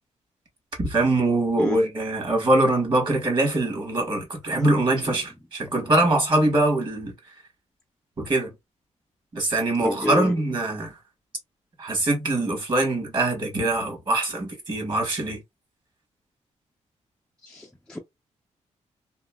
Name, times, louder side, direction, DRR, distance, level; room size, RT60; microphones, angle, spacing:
voice 1, 0.8-7.1 8.2-8.5 9.3-10.9 11.8-15.4, right 2 dB, 40° right, 1.5 m, -23 dB
voice 2, 9.8-10.3 17.4-18.0, left 1 dB, 5° left, 0.4 m, -29 dB
3.0 x 2.6 x 2.2 m
wide cardioid pair, 135°, 12 cm